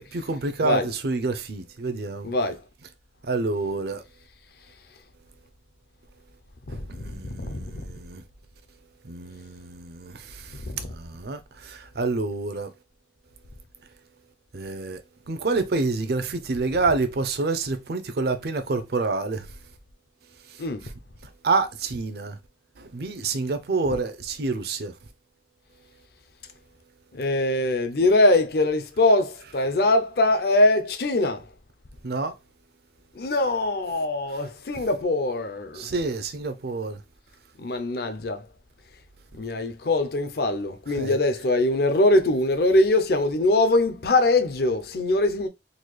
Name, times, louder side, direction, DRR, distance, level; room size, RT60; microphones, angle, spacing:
voice 1, 0.0-2.3 3.3-4.0 6.7-8.2 9.0-10.6 10.9-12.7 14.5-15.0 15.3-19.5 20.5-20.6 21.4-22.4 22.8-24.9 32.0-32.3 35.7-37.0 41.0-41.2, right 3 dB, 60° right, 0.6 m, -28 dB
voice 2, 2.2-2.6 6.7-6.8 7.3-7.6 10.7-10.9 20.6-20.8 27.1-31.5 33.2-35.9 37.6-38.4 39.4-45.5, left 2 dB, 60° left, 0.6 m, -22 dB
3.9 x 2.3 x 3.1 m
head